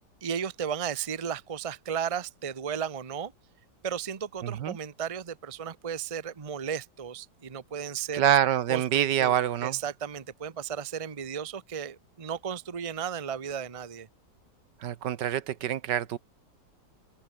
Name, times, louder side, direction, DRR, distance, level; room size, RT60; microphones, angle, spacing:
voice 1, 0.2-3.3 3.8-8.3 8.7-8.8 9.2-14.1, right 7 dB, 25° right, 0.8 m, -34 dB
voice 2, 4.4-4.8 8.1-9.8 14.8-16.2, right 10 dB, 75° right, 1.6 m, -26 dB
open air
omnidirectional pair, 1.9 m